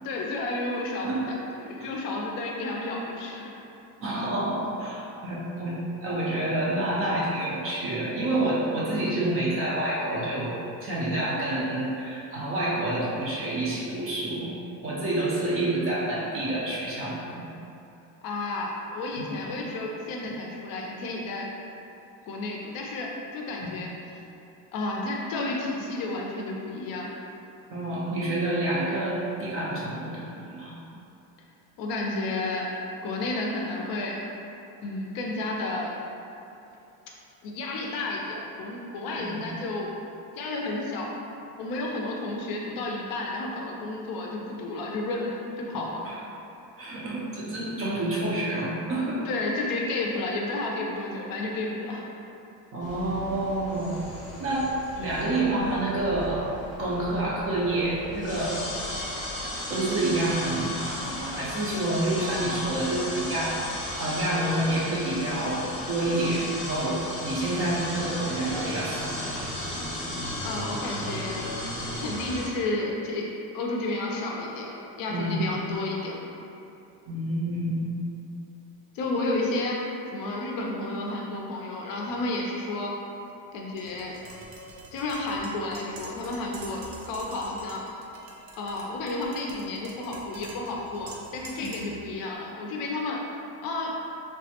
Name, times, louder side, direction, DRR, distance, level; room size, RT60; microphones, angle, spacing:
voice 1, 0.0-3.5 18.2-21.5 22.3-23.9 24.7-27.1 31.8-32.7 33.0-34.2 34.8-35.9 37.4-39.9 40.4-41.1 41.6-46.0 49.2-52.1 70.4-71.5 72.0-73.3 73.5-74.7 75.0-76.2 78.9-79.8 80.1-82.9 83.5-84.2 84.9-87.8 88.6-93.2 93.6-93.9, left 2 dB, 50° left, -1 dB, 0.5 m, -31 dB
voice 2, 4.0-17.5 19.2-19.6 20.2-20.3 23.6-23.7 27.7-30.8 39.2-39.5 45.7-46.2 46.8-49.2 52.7-54.0 54.4-58.6 59.7-69.4 75.1-75.5 77.1-77.9, right 1 dB, 30° right, -6 dB, 0.4 m, -28 dB
sound 1, 52.8-72.5, left 1 dB, 15° left, 0.8 m, -35 dB
sound 2, 64.3-67.8 68.3-69.5, left 1 dB, 60° right, 0.8 m, -44 dB
Tap, 83.8-92.0, right 2 dB, 90° right, 0.6 m, -46 dB
3.3 x 2.1 x 2.8 m, 2.8 s
cardioid pair, 135°, 45 cm